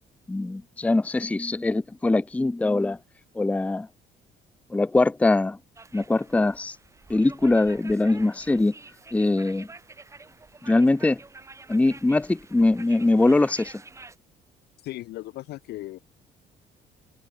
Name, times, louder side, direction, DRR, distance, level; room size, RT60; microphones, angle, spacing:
voice 1, 0.3-3.0 3.4-3.9 4.7-5.6 5.9-6.8 7.1-8.7 9.1-9.7 10.6-11.2 11.7-13.7, left 2 dB, 10° left, 0.6 m, -22 dB
sound 1, 5.7-14.1, right 3 dB, 15° right, 1.6 m, -48 dB
voice 2, 14.8-16.0, left 17 dB, 75° left, 1.1 m, -37 dB
cardioid pair, 110°, 17 cm